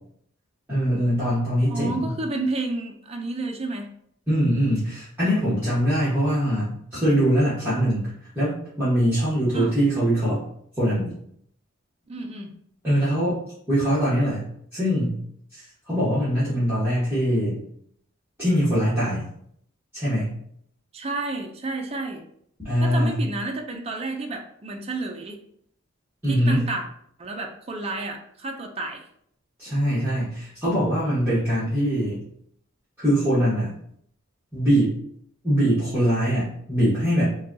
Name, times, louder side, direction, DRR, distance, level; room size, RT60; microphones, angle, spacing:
voice 1, 0.7-2.1 4.3-8.1 8.3-10.4 10.8-11.1 12.8-13.4 13.7-14.4 14.7-15.2 15.5-17.6 18.4-19.2 19.9-20.3 22.6-23.3 26.2-26.6 29.6-32.2 33.0-33.7 34.5-34.9 35.4-37.2, equal, 10° right, -13 dB, 1.3 m, -22 dB
voice 2, 1.7-3.9 9.5-9.7 12.1-12.5 20.9-22.2 22.8-25.4 26.3-26.9 27.2-29.1, right 2 dB, 30° right, 2 dB, 0.4 m, -31 dB
5.4 x 2.3 x 2.7 m, 0.67 s
head